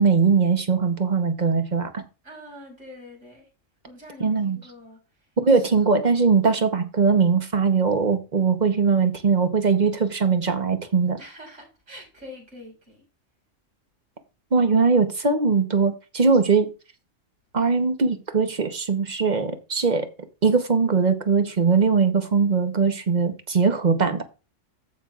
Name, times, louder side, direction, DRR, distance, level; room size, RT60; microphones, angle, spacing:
voice 1, 0.0-2.0 4.2-4.6 5.4-11.2 14.5-16.7 17.5-20.1 20.4-24.2, right 5 dB, 40° right, 1.0 m, -21 dB
voice 2, 2.2-3.5 3.8-5.3 11.2-13.0, left 1 dB, 90° right, 5.5 m, -44 dB
15.0 x 5.7 x 2.4 m
omnidirectional pair, 1.3 m